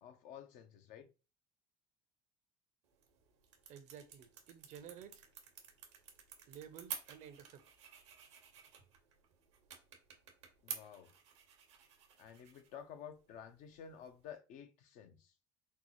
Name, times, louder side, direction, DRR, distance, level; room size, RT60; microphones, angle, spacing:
voice 1, 0.0-1.1 10.6-11.1 12.2-15.3, left 8 dB, 60° left, 0.6 m, -52 dB
sound 1, 2.8-14.4, right 7 dB, 80° right, 0.9 m, -52 dB
voice 2, 3.7-5.2 6.5-7.6, right 8 dB, 55° right, 0.6 m, -53 dB
4.4 x 2.1 x 2.8 m
hypercardioid pair, 70°, 14 cm